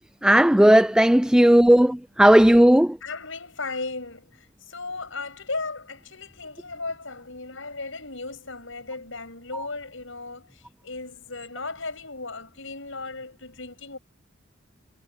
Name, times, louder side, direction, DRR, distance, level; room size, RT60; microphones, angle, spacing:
voice 1, 0.2-3.0, right 1 dB, 5° right, 0.4 m, -15 dB
voice 2, 3.0-14.0, left 3 dB, 70° left, 7.4 m, -36 dB
head